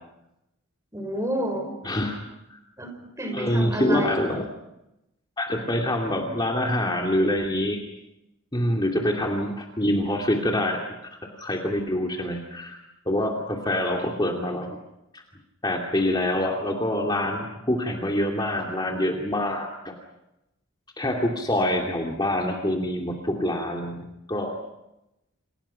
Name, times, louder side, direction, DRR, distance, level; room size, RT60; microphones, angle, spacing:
voice 1, 0.9-1.7 2.8-4.4, right 1 dB, 15° right, 5 dB, 5.6 m, -30 dB
voice 2, 1.8-2.2 2.5-2.6 3.3-4.4 5.4-7.8 8.5-10.8 11.1-12.8 13.1-14.8 15.1-15.2 15.6-19.9 21.0-24.5, left 1 dB, 20° left, 1 dB, 2.7 m, -26 dB
29.5 x 28.5 x 5.8 m, 0.90 s
head